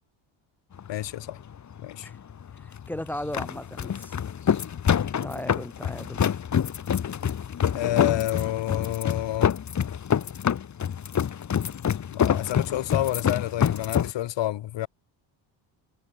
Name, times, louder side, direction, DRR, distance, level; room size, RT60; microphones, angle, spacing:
sound 1, 0.7-14.1, left 8 dB, 35° left, 2.7 m, -27 dB
voice 1, 0.9-1.4 1.8-2.1 7.7-9.5 12.1-14.9, left 14 dB, 65° left, 5.6 m, -29 dB
voice 2, 2.6-4.2 5.2-6.3, left 1 dB, 5° left, 4.4 m, -36 dB
cardioid pair, 135°, 46 cm